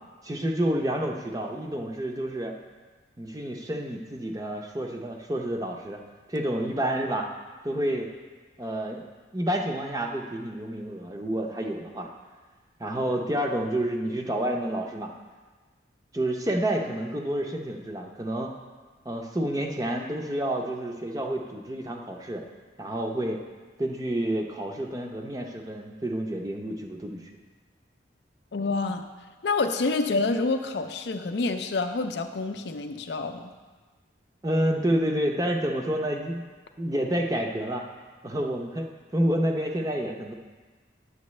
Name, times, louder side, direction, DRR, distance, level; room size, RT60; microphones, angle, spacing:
voice 1, 0.2-2.5 3.2-6.0 6.3-7.3 7.6-8.1 8.6-9.0 9.3-12.1 12.8-15.1 16.1-18.5 19.0-22.4 22.8-23.4 23.8-27.3 34.4-36.4 36.8-37.8 38.2-38.9 39.1-40.3, right 1 dB, 20° right, 2 dB, 0.6 m, -29 dB
voice 2, 28.5-29.1 29.4-33.5, left 3 dB, 60° left, 6 dB, 0.5 m, -27 dB
9.5 x 7.6 x 3.2 m, 1.4 s
head